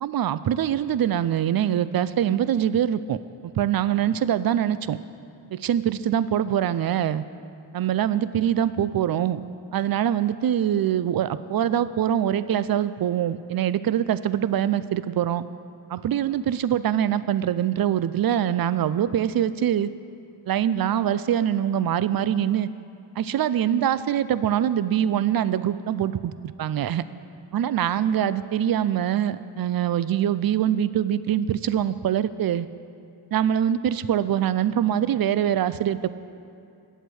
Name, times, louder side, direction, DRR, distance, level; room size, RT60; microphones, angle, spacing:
voice 1, 0.0-5.0 5.5-7.2 7.7-9.4 9.7-15.4 15.9-19.9 20.5-22.7 23.2-26.3 26.6-27.0 27.5-32.7 33.3-36.1, right 10 dB, 50° right, 15 dB, 0.5 m, -24 dB
9.8 x 8.0 x 6.3 m, 2.6 s
cardioid pair, 50°, 48 cm